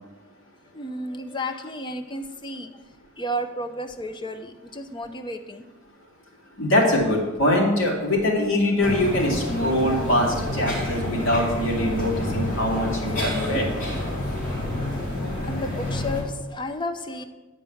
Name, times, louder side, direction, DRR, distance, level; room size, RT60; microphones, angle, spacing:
voice 1, 0.7-2.7 3.2-5.7 11.9-12.0 15.2-17.2, left 1 dB, 25° left, 7 dB, 0.6 m, -33 dB
voice 2, 6.6-13.7, left 1 dB, 75° left, -2 dB, 2.3 m, -23 dB
sound 1, 8.8-16.2, left 1 dB, 45° left, 2.6 m, -28 dB
8.9 x 4.6 x 7.0 m, 1.2 s
head